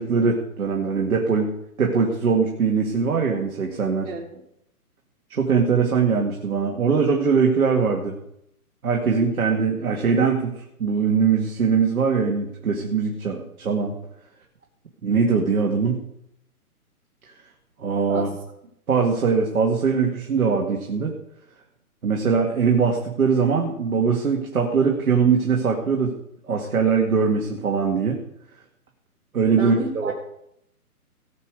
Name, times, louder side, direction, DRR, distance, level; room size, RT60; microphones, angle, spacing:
voice 1, 0.0-1.5 1.8-4.1 5.3-8.1 8.8-10.5 10.8-13.9 15.0-16.0 17.8-18.3 18.9-21.1 22.0-26.1 26.5-28.2 29.3-30.1, right 5 dB, 70° right, 0 dB, 2.3 m, -21 dB
voice 2, 4.0-4.4 18.1-18.4 20.4-20.5 29.5-30.1, right 4 dB, 50° right, -5 dB, 3.1 m, -32 dB
18.5 x 6.8 x 4.9 m, 0.77 s
hypercardioid pair, 150°, 45 cm